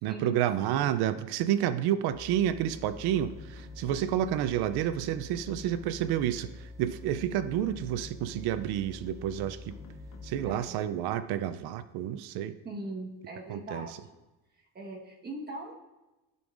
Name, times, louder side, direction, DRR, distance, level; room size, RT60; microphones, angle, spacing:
voice 1, 0.0-9.8 10.2-12.6 13.5-13.9, right 11 dB, 90° right, 13 dB, 0.5 m, -30 dB
sound 1, 2.1-10.8, left 3 dB, 10° right, 0.3 m, -47 dB
sound 2, 2.8-4.3 4.7-6.5 7.0-8.6 9.3-10.8, left 3 dB, 50° left, 1.1 m, -51 dB
voice 2, 10.4-10.8 12.6-13.9 14.6-15.7, right 2 dB, 25° right, 0 dB, 1.3 m, -40 dB
12.0 x 5.3 x 2.5 m, 1.1 s
cardioid pair, 135°, 37 cm